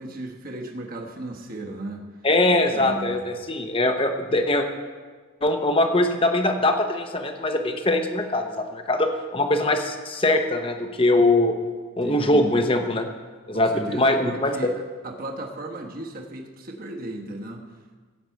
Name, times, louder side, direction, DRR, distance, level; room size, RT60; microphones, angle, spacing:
voice 1, 0.0-2.1 2.7-3.2 12.0-12.5 13.5-17.6, right 2 dB, 40° right, 1 dB, 1.2 m, -35 dB
voice 2, 2.2-4.7 5.4-11.5 12.0-13.1 13.5-14.6, left 2 dB, 25° left, 5 dB, 0.9 m, -22 dB
16.0 x 8.5 x 4.6 m, 1.5 s
head